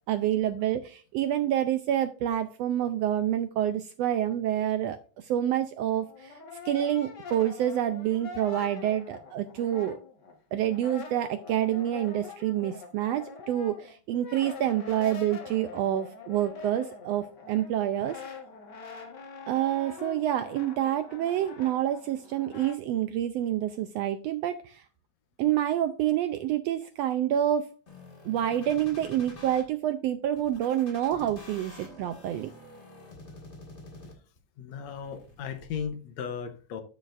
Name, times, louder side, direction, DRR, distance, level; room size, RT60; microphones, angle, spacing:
voice 1, 0.1-6.4 6.6-10.0 10.5-18.2 19.5-24.8 25.4-27.7 28.2-32.5, right 11 dB, 80° right, 1.5 m, -28 dB
Brass instrument, 5.9-10.3 10.6-22.8, left 4 dB, 45° left, 1.6 m, -44 dB
sound 1, 27.9-29.6 30.4-34.4 34.9-35.8, left 2 dB, 25° left, 1.7 m, -48 dB
voice 2, 34.6-36.8, left 7 dB, 75° left, 2.0 m, -36 dB
12.5 x 6.4 x 2.5 m
omnidirectional pair, 3.3 m